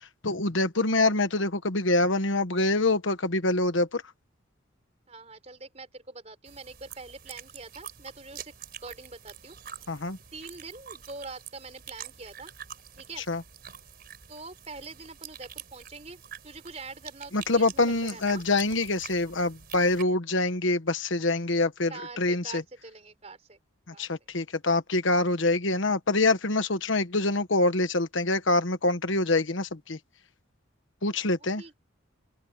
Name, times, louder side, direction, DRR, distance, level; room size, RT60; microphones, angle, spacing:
voice 1, 0.2-4.0 9.9-10.2 13.3-13.4 17.3-22.6 23.9-30.0 31.0-31.6, left 2 dB, 65° left, 1.3 m, -25 dB
voice 2, 5.1-8.5 8.8-9.6 10.3-12.5 13.0-13.3 14.3-18.4 21.9-23.6 23.9-24.1 31.2-31.8, right 3 dB, 30° right, 4.2 m, -44 dB
sound 1, 6.5-20.0, right 8 dB, 45° right, 4.5 m, -46 dB
open air
head